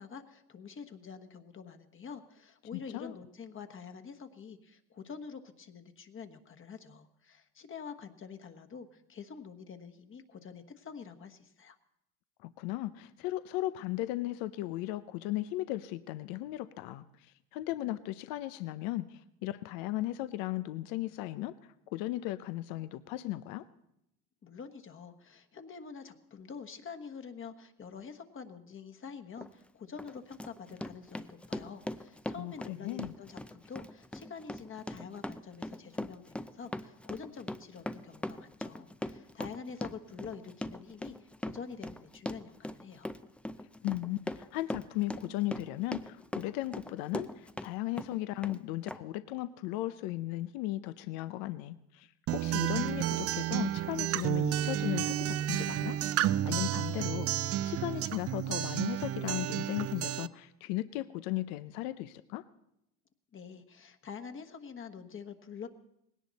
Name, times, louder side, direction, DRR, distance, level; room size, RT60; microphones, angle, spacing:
voice 1, 0.0-11.8 24.4-43.1 63.3-65.7, left 6 dB, 35° left, 6 dB, 1.3 m, -46 dB
voice 2, 2.7-3.2 12.4-23.7 32.4-33.1 43.6-56.0 56.4-62.4, left 16 dB, 75° left, 13 dB, 0.7 m, -36 dB
Run, 29.4-29.5 30.0-47.7 48.0-48.6 48.9-49.0, left 1 dB, 5° left, 0.5 m, -40 dB
Acoustic guitar, 52.3-60.3, right 12 dB, 40° right, 0.5 m, -31 dB
19.0 x 17.5 x 4.1 m, 0.82 s
supercardioid pair, 100°, 36 cm